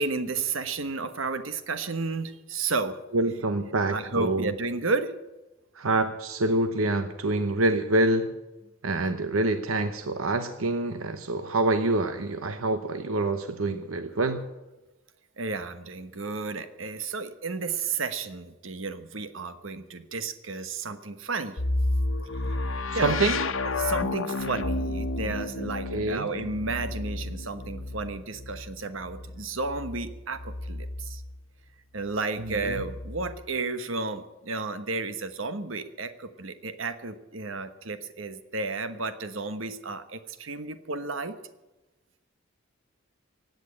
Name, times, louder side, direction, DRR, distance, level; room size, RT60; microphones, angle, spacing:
voice 1, 0.0-3.0 3.9-5.1 15.4-21.6 22.4-23.2 23.8-31.2 31.9-41.4, right 3 dB, 70° right, 10 dB, 1.2 m, -32 dB
voice 2, 3.1-4.5 5.7-8.3 8.8-14.5 23.0-23.4 25.9-26.3 32.4-32.8, right 2 dB, 90° right, 9 dB, 1.0 m, -26 dB
sound 1, 21.6-31.4 32.4-33.4, left 2 dB, 75° left, 1.1 m, -32 dB
16.5 x 9.1 x 8.6 m, 1.1 s
head